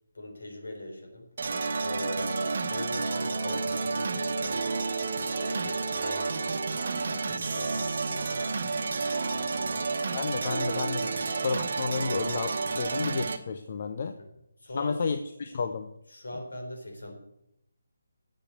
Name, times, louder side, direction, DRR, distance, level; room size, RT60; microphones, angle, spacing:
voice 1, 0.1-10.0 11.0-11.2 14.2-14.3 14.6-15.2 16.1-17.1, left 1 dB, 65° left, 3 dB, 3.8 m, -41 dB
sound 1, 1.4-13.4, right 4 dB, 50° right, 1.2 m, -30 dB
voice 2, 10.1-11.0 11.4-14.2 14.7-15.9, left 5 dB, 45° left, 8 dB, 0.8 m, -31 dB
10.0 x 7.7 x 8.2 m, 0.81 s
figure-of-eight pair, 145°, 0 cm